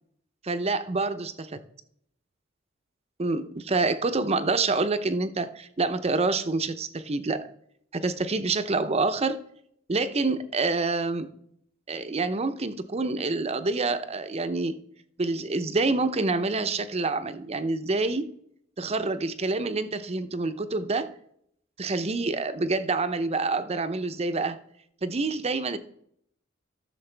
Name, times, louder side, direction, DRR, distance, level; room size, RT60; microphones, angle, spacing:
voice 1, 0.4-1.6 3.2-7.5 7.9-9.4 9.9-11.3 11.9-14.8 15.2-18.3 18.8-21.1 21.8-24.6 25.0-25.8, right 3 dB, 30° right, 11 dB, 0.6 m, -27 dB
13.5 x 6.6 x 3.3 m, 0.70 s
head